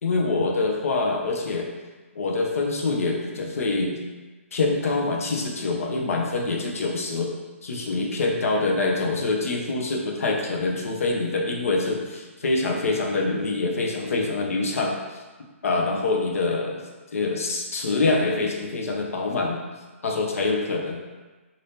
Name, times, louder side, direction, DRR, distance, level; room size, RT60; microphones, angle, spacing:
voice 1, 0.0-1.7 2.1-4.0 4.5-7.3 7.7-15.2 15.6-16.8 17.1-19.6 20.0-21.0, left 3 dB, 80° left, 1 dB, 0.6 m, -25 dB
3.4 x 2.6 x 2.7 m, 1.3 s
hypercardioid pair, 165°, 8 cm